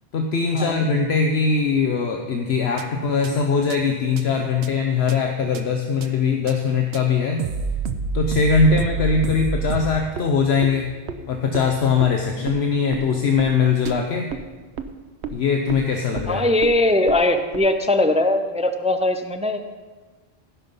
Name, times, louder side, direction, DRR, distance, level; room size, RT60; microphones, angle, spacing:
voice 1, 0.1-7.4 8.1-10.9 11.3-14.3 15.3-16.5, left 5 dB, 70° left, 3 dB, 1.1 m, -21 dB
sound 1, 2.3-2.4 2.8-2.9 3.2-3.3 3.7-3.8 4.2-4.3 4.6-4.7 5.1-5.2 5.5-5.6 6.0-6.1 6.5-6.6 6.9-7.0 7.4-10.2 10.6-10.7 11.1-11.2 11.5-11.6 12.0-12.1 12.5-12.6 12.9-13.0 13.4-13.5 13.8-13.9 14.3-14.4 14.8-14.9 15.2-15.3 15.7-15.8 16.1-16.3 16.6-16.7 17.1-17.2 17.5-17.6, right 5 dB, 75° right, 1.0 m, -28 dB
voice 2, 16.3-19.6, left 2 dB, 10° right, 7 dB, 0.3 m, -20 dB
16.0 x 5.5 x 5.4 m, 1.3 s
omnidirectional pair, 1.1 m